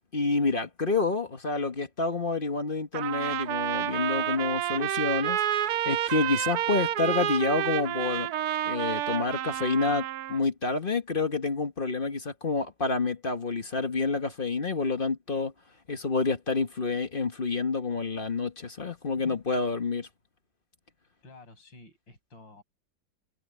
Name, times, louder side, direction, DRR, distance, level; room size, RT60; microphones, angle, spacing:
voice 1, 0.1-8.3 8.6-15.5 15.9-20.1, left 3 dB, 30° left, 1.5 m, -28 dB
Trumpet, 2.9-10.4, right 11 dB, 70° right, 1.0 m, -29 dB
voice 2, 21.2-22.6, left 2 dB, 85° left, 8.5 m, -51 dB
omnidirectional pair, 2.0 m